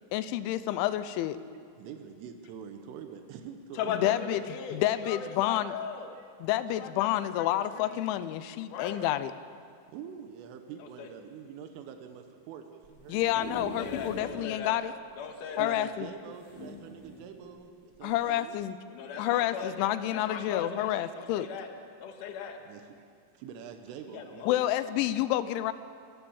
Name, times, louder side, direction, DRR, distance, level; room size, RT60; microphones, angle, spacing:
voice 1, 0.1-1.4 4.0-5.7 6.4-9.3 13.1-14.9 15.6-16.1 18.0-18.8 19.2-21.5 24.5-25.7, left 13 dB, 85° left, 13 dB, 3.0 m, -29 dB
voice 2, 1.8-4.5 6.2-6.3 9.9-13.2 15.6-18.8 22.7-23.1 23.3-24.5, right 7 dB, 85° right, 6 dB, 3.6 m, -45 dB
voice 3, 3.7-6.1 6.8-7.1 7.3-7.5 7.7-8.0 8.7-9.1 10.8-11.1 13.3-14.8 15.2-15.8 18.9-21.7 22.0-22.6 24.1-24.5, left 6 dB, 60° left, 4 dB, 2.2 m, -38 dB
sound 1, 12.8-14.4 14.8-14.9 15.1-15.2 16.3-17.3 17.9-18.1, equal, 5° right, 5.0 m, -42 dB
27.0 x 13.5 x 7.2 m, 2.3 s
omnidirectional pair, 5.6 m